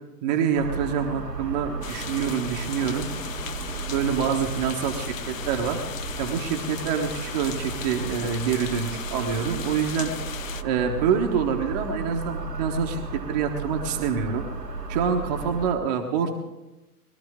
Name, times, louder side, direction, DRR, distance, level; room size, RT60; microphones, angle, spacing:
voice 1, 0.2-3.1 3.9-5.8 6.2-10.1 10.6-14.4 14.9-16.3, right 7 dB, 25° right, 3 dB, 1.2 m, -26 dB
sound 1, 0.5-15.7, right 3 dB, 90° right, 1.8 m, -34 dB
sound 2, 1.8-10.6, left 9 dB, 55° left, 0.7 m, -37 dB
21.0 x 13.0 x 3.7 m, 1.0 s
figure-of-eight pair, 120°, 48 cm